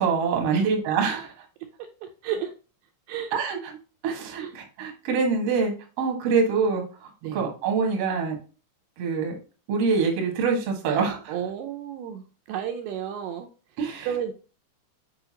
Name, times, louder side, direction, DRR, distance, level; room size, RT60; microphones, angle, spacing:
voice 1, 0.0-1.3 3.3-3.6 4.0-8.4 9.0-9.3 9.7-11.3 13.8-14.1, right 5 dB, 60° right, 2 dB, 1.6 m, -25 dB
voice 2, 2.0-2.6 3.1-3.3 4.4-4.5 7.2-7.6 10.9-14.3, right 9 dB, 80° right, 4 dB, 2.4 m, -33 dB
6.8 x 4.9 x 2.8 m, 0.35 s
omnidirectional pair, 5.0 m